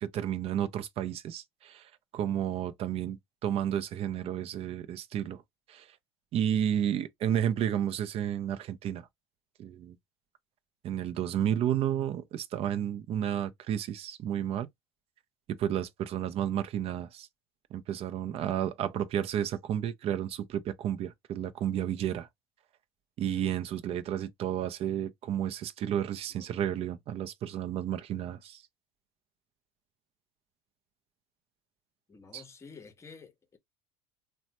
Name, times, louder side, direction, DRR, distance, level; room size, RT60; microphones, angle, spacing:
voice 1, 0.0-5.4 5.7-5.9 6.3-9.1 9.6-10.0 10.8-14.7 15.5-17.3 17.7-22.3 23.2-28.6 32.3-32.4, right 10 dB, 45° right, 0.5 m, -32 dB
voice 2, 26.3-26.6 32.1-33.6, left 5 dB, 20° left, 0.7 m, -51 dB
3.1 x 2.1 x 2.8 m
supercardioid pair, 95°, 14 cm